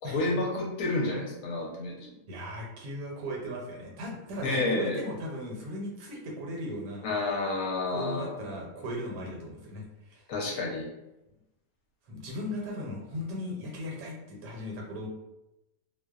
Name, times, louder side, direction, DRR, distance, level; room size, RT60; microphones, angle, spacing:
voice 1, 0.0-2.0 4.4-5.0 7.0-8.3 10.3-10.9, left 2 dB, 70° left, -2 dB, 1.0 m, -30 dB
voice 2, 2.0-7.1 7.9-10.3 12.1-15.1, equal, 80° right, -1 dB, 1.2 m, -37 dB
2.7 x 2.0 x 2.3 m, 0.94 s
omnidirectional pair, 1.7 m